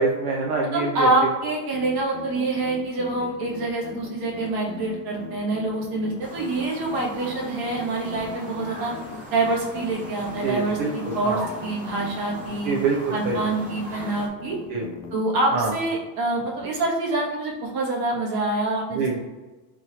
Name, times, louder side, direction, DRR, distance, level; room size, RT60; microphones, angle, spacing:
voice 1, 0.0-1.1 10.4-11.4 12.6-13.6 14.7-14.9 15.5-15.7 18.9-19.2, right 4 dB, 75° right, -3 dB, 0.9 m, -25 dB
voice 2, 0.7-8.9 9.3-10.8 11.1-12.8 13.1-14.6 15.1-19.2, right 2 dB, 50° right, -3 dB, 1.4 m, -26 dB
sound 1, 1.7-15.1, left 6 dB, 35° left, 0.4 m, -39 dB
sound 2, 6.2-14.3, equal, 15° right, 0.7 m, -40 dB
3.8 x 3.1 x 4.0 m, 1.2 s
cardioid pair, 175°, 47 cm